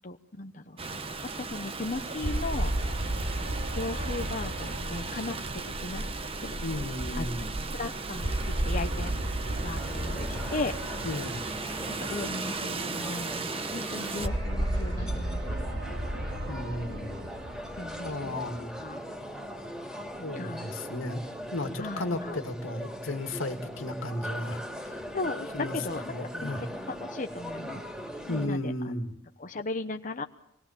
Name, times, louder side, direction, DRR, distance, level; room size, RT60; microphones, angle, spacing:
voice 1, 0.0-1.0 1.4-2.7 3.7-5.4 5.8-6.0 6.4-6.5 7.2-7.3 7.7-9.3 9.6-10.7 11.7-16.0 17.8-18.4 18.8-19.1 20.4-20.7 21.8-22.4 25.1-27.8 28.3-28.7 29.4-30.2, left 2 dB, 40° left, 5 dB, 0.9 m, -37 dB
Rain, 0.8-14.3, right 3 dB, 30° right, 1.0 m, -36 dB
sound 1, 2.2-6.8 8.2-12.6 14.2-18.8, right 1 dB, 65° right, 3.7 m, -33 dB
voice 2, 6.6-7.5 11.0-11.4 16.5-17.3 18.0-18.7 20.2-21.2 21.5-25.0 25.5-25.8 26.1-26.7 28.3-29.1, left 1 dB, 85° left, 5 dB, 2.2 m, -34 dB
sound 2, 9.8-28.5, equal, 5° right, 2.4 m, -40 dB
25.0 x 20.5 x 7.3 m, 0.78 s
head